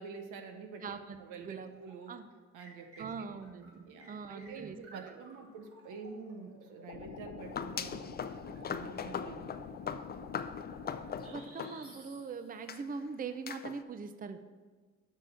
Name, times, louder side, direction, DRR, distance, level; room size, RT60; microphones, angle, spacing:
voice 1, 0.0-0.9 1.2-2.2 2.5-3.3 3.9-8.2 8.5-9.5, right 5 dB, 85° right, 6 dB, 1.0 m, -47 dB
voice 2, 0.8-1.7 2.1-2.3 3.0-5.1 11.3-14.4, right 5 dB, 30° right, 10 dB, 0.5 m, -42 dB
sound 1, 1.4-2.2 2.6-9.2 11.2-12.8, right 2 dB, 50° right, 2.1 m, -57 dB
sound 2, 6.9-11.3, left 6 dB, 70° left, 0.9 m, -46 dB
echo ljubljana castle, 7.4-12.2 12.7-12.8 13.5-13.8, left 7 dB, 30° left, 0.4 m, -40 dB
6.4 x 6.4 x 6.6 m, 1.4 s
cardioid pair, 90°, 30 cm